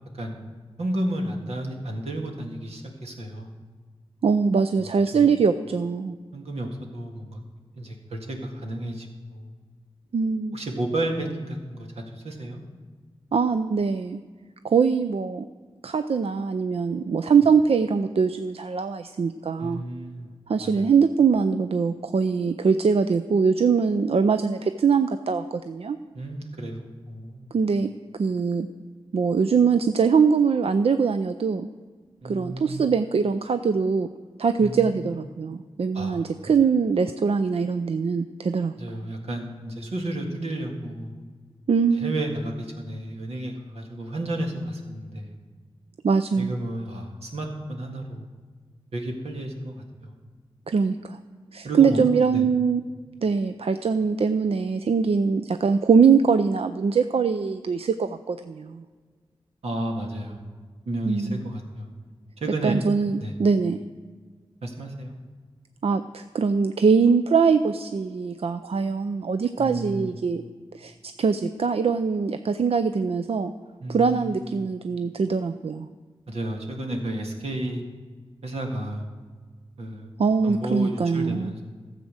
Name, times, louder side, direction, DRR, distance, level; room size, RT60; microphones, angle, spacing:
voice 1, 0.2-0.5 0.8-3.5 5.1-5.3 6.3-7.4 7.7-9.5 10.5-12.6 19.6-20.3 20.6-20.9 26.1-27.5 32.2-32.9 34.6-35.1 35.9-36.3 38.8-41.2 41.9-45.3 46.3-48.3 48.9-50.2 51.6-52.4 59.6-60.5 60.8-61.9 62.4-62.8 63.2-63.3 64.6-65.2 69.6-70.1 73.8-74.7 76.3-77.8 78.4-79.1 79.8-80.1 80.4-81.6, right 1 dB, 90° right, 1 dB, 1.8 m, -32 dB
voice 2, 4.2-6.2 10.1-10.6 13.3-14.2 14.6-15.5 15.8-19.8 20.5-26.0 27.5-27.9 28.2-28.7 29.1-31.7 32.2-34.1 34.4-38.7 41.7-42.2 46.0-46.6 50.7-51.2 51.5-52.8 53.2-58.8 61.1-61.4 62.6-63.8 65.8-70.4 70.7-73.5 73.9-75.9 80.2-81.5, right 5 dB, 70° right, 10 dB, 0.5 m, -22 dB
13.5 x 7.6 x 6.3 m, 1.5 s
cardioid pair, 45°, 10 cm